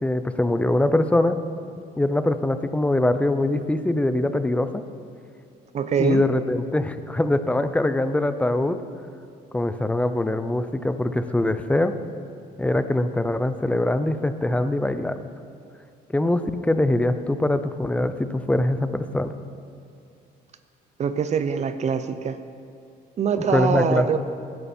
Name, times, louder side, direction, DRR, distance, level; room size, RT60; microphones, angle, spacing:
voice 1, 0.0-1.4 2.0-4.8 6.0-8.8 9.5-12.0 12.6-15.2 16.1-19.3 23.4-24.2, left 1 dB, 5° left, 11 dB, 0.6 m, -23 dB
voice 2, 5.7-6.2 21.0-22.4 23.2-24.2, right 7 dB, 40° right, 10 dB, 0.7 m, -23 dB
18.0 x 10.5 x 4.4 m, 2.5 s
cardioid pair, 110°, 17 cm